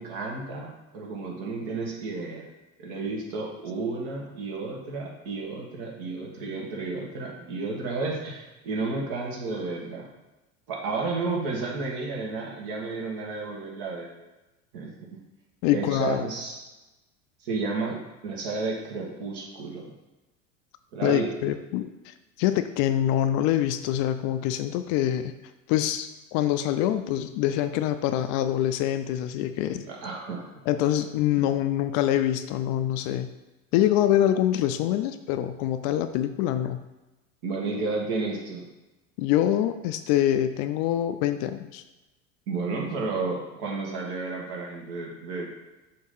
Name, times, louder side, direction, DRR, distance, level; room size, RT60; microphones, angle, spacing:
voice 1, 0.0-2.4 2.8-10.1 10.7-14.1 14.7-15.2 15.7-16.6 17.4-18.0 18.2-19.9 20.9-21.3 29.9-30.5 37.4-38.6 42.5-45.5, right 3 dB, 60° right, -1 dB, 1.9 m, -32 dB
voice 2, 15.6-16.3 21.0-25.3 25.7-29.9 30.7-33.3 33.7-36.8 39.2-41.8, left 12 dB, 50° left, 10 dB, 0.5 m, -25 dB
6.6 x 3.0 x 5.5 m, 1.1 s
hypercardioid pair, 80°, 39 cm